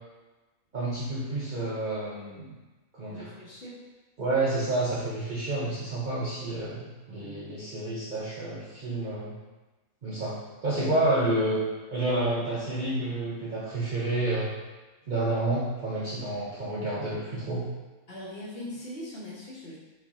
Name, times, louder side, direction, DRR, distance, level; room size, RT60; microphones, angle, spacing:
voice 1, 0.7-2.5 2.9-3.3 4.2-9.4 10.0-10.4 10.6-11.6 11.9-14.5 15.1-17.7, right 2 dB, 50° right, -8 dB, 0.6 m, -29 dB
voice 2, 3.1-3.8 7.1-7.5 18.1-19.8, left 1 dB, 50° left, -6 dB, 1.1 m, -41 dB
4.4 x 2.7 x 3.5 m, 1.2 s
omnidirectional pair, 1.5 m